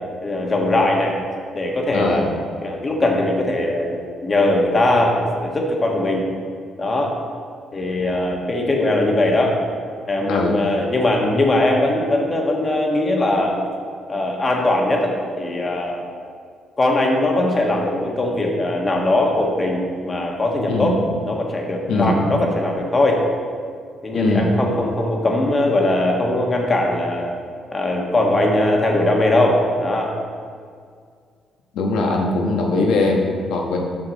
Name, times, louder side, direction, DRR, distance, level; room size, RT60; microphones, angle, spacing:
voice 1, 0.2-1.1 1.5-2.2 2.6-6.3 6.8-7.1 7.7-9.6 10.1-13.6 14.1-16.0 16.8-21.0 21.3-23.2 24.0-27.3 27.7-30.1, left 1 dB, 30° left, 0 dB, 1.4 m, -20 dB
voice 2, 1.9-2.2 10.3-10.6 20.7-21.0 21.9-22.2 24.1-24.5 31.7-33.8, left 2 dB, 85° left, 0 dB, 1.2 m, -20 dB
7.5 x 6.6 x 4.1 m, 2.1 s
cardioid pair, 90°, 0 cm